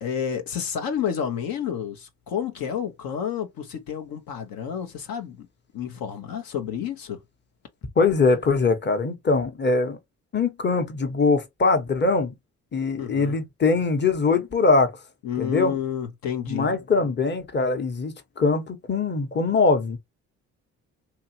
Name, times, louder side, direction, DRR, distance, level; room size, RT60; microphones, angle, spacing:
voice 1, 0.0-5.5 5.7-7.2 13.0-13.4 15.2-16.7, left 8 dB, 70° left, 0.8 m, -30 dB
voice 2, 8.0-10.0 10.3-12.3 12.7-14.9 15.4-15.7 16.5-20.0, left 4 dB, 30° left, 1.0 m, -22 dB
2.9 x 2.7 x 2.7 m
supercardioid pair, 55°, 36 cm